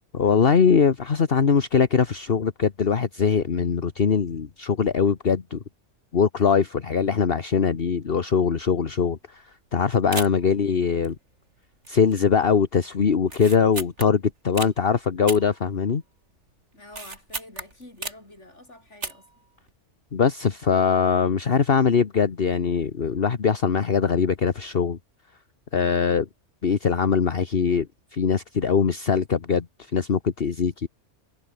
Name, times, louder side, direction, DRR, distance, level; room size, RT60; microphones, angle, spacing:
voice 1, 0.1-5.6 6.1-9.4 9.7-11.1 11.9-16.0 20.1-25.0 25.7-26.3 26.6-27.9 28.1-29.7 29.9-30.9, left 6 dB, 50° left, 1.4 m, -22 dB
sound 1, 9.1-9.4 9.7-9.8 10.1-10.5 11.0-11.5 11.8-12.2 12.5-12.6 13.2-14.7 15.3-16.2 16.5-18.4 18.9-19.4 19.7-19.8, right 3 dB, 70° right, 3.8 m, -35 dB
voice 2, 16.7-19.3, left 1 dB, 75° left, 6.9 m, -47 dB
omnidirectional pair, 1.2 m